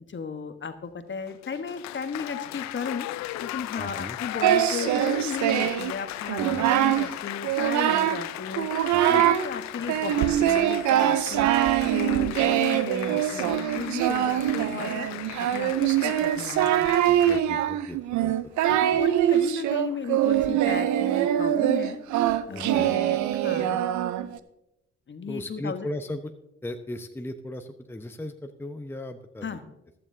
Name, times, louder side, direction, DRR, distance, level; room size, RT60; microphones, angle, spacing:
voice 1, 0.0-16.9 18.7-22.0 22.5-23.9 24.2-24.3 25.1-25.9 29.4-29.6, left 6 dB, 35° left, 9 dB, 1.2 m, -35 dB
Applause, 1.2-17.4, left 15 dB, 60° left, 0.5 m, -37 dB
voice 2, 3.7-4.2 6.5-6.7 8.9-9.3 17.0-18.3 18.6-19.0 22.5-22.9 25.3-26.3 26.6-29.5, left 1 dB, 5° left, 6 dB, 0.8 m, -37 dB
Singing, 4.4-5.9 6.3-7.1 7.4-8.3 8.6-9.5 9.9-24.4, right 11 dB, 65° right, 0.7 m, -23 dB
14.5 x 12.0 x 2.7 m, 0.87 s
hypercardioid pair, 40°, 32 cm